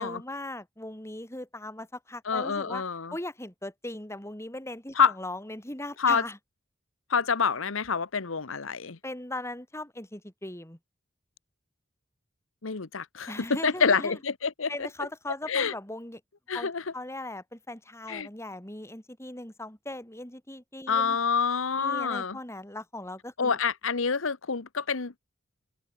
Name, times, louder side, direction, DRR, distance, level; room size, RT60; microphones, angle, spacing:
voice 1, 0.0-2.8 3.1-6.4 9.0-10.8 13.3-14.2 14.7-16.2 16.5-21.2 21.8-23.6, left 1 dB, 15° left, 3.7 m, -39 dB
voice 2, 2.3-3.1 5.0-5.1 6.0-6.2 7.1-9.0 12.6-14.9 15.5-15.7 16.5-16.8 18.1-18.3 20.9-22.4 23.4-25.2, left 5 dB, 85° left, 1.1 m, -27 dB
open air
head